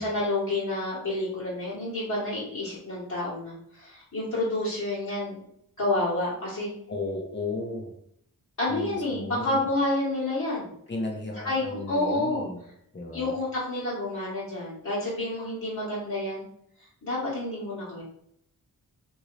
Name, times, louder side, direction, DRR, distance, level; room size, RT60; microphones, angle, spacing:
voice 1, 0.0-5.4 5.8-6.7 8.6-10.7 11.4-12.5 13.1-16.4 17.0-18.0, left 2 dB, 50° left, -9 dB, 1.4 m, -29 dB
voice 2, 6.9-7.9 8.7-9.6 10.9-12.6 12.9-13.4, left 2 dB, 30° left, 1 dB, 0.9 m, -34 dB
2.7 x 2.6 x 3.2 m, 0.71 s
cardioid pair, 65°, 37 cm